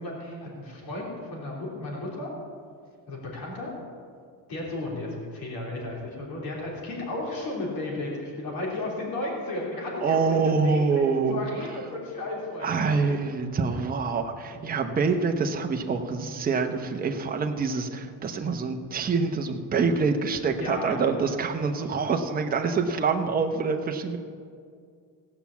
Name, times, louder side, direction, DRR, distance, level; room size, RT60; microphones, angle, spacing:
voice 1, 0.0-2.3 3.1-3.7 4.5-13.2 20.5-21.3, left 2 dB, 55° left, -3 dB, 3.4 m, -34 dB
voice 2, 10.0-11.4 12.6-24.2, right 4 dB, 20° right, 4 dB, 0.8 m, -26 dB
17.5 x 5.8 x 7.2 m, 2.2 s
cardioid pair, 155°, 41 cm